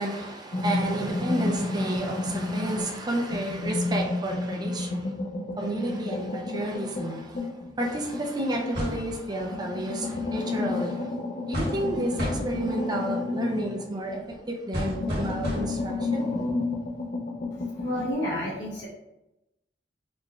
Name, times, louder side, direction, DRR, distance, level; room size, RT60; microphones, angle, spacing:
voice 1, 0.0-5.1 5.6-11.1 11.5-16.3, right 1 dB, 25° right, 1 dB, 0.5 m, -31 dB
sound 1, 0.5-3.0 3.3-8.9 9.4-14.4 14.8-18.1, left 2 dB, 50° left, 0.5 m, -31 dB
sound 2, 8.7-9.1 11.5-11.9 12.2-12.6 14.7-15.9, equal, 60° right, 1.4 m, -31 dB
voice 2, 17.5-18.9, equal, 85° left, -7 dB, 0.8 m, -31 dB
3.8 x 3.2 x 2.3 m, 0.92 s
head